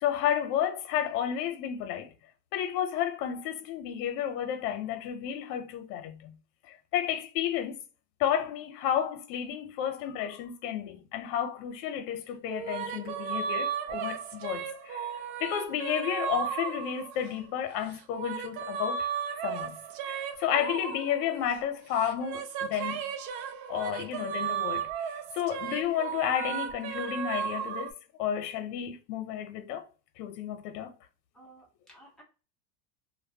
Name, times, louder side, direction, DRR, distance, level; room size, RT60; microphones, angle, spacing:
voice 1, 0.0-2.1 2.5-6.3 6.6-7.8 8.2-15.1 15.4-19.1 19.4-19.8 20.1-23.1 23.7-27.9 28.2-29.9 30.2-30.9, left 10 dB, 75° left, 0.7 m, -32 dB
sound 1, 12.5-17.4 17.9-21.7 22.0-27.9, right 7 dB, 55° right, 0.5 m, -35 dB
voice 2, 31.3-32.2, right 1 dB, ahead, 0.5 m, -55 dB
2.5 x 2.1 x 2.6 m
cardioid pair, 155°, 48 cm